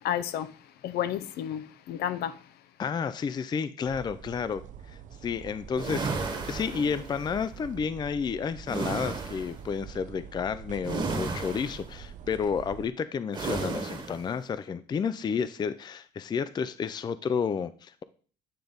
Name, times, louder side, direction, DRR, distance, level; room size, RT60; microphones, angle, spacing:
voice 1, 0.0-2.5, left 10 dB, 70° left, 0.6 m, -32 dB
voice 2, 2.8-4.6 4.9-6.1 6.5-18.0, left 6 dB, 25° left, 0.4 m, -31 dB
sound 1, 3.9-12.9, right 8 dB, 50° right, 0.5 m, -45 dB
sound 2, 5.7-7.4 8.7-9.6 10.8-11.9 13.3-14.3, right 4 dB, 25° right, 1.4 m, -33 dB
8.9 x 3.4 x 3.9 m
cardioid pair, 110°, 17 cm